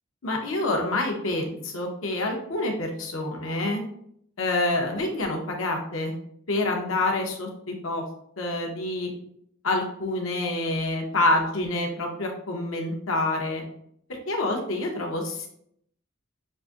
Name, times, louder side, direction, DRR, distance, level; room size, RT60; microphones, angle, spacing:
voice 1, 0.2-3.8 4.4-6.1 6.5-8.0 8.4-9.1 9.6-13.6 14.3-15.5, left 2 dB, 90° left, 1 dB, 0.9 m, -27 dB
6.4 x 2.6 x 2.5 m, 0.69 s
head